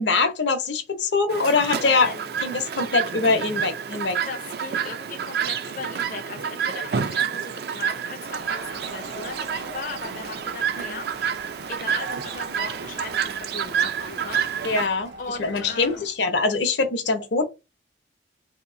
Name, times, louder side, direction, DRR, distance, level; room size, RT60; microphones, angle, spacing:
voice 1, 0.0-2.1 2.4-4.2 10.8-11.0 14.6-15.1 15.4-17.4, left 4 dB, 75° left, 0.8 m, -23 dB
Chirp tweet, 1.3-14.9, right 7 dB, 55° right, 0.3 m, -29 dB
voice 2, 1.8-2.4 4.2-11.4 11.7-14.4 15.2-16.1, left 4 dB, 50° left, 0.5 m, -37 dB
Crowd, 8.2-16.1, right 2 dB, 85° right, 1.0 m, -41 dB
2.9 x 2.7 x 3.6 m
head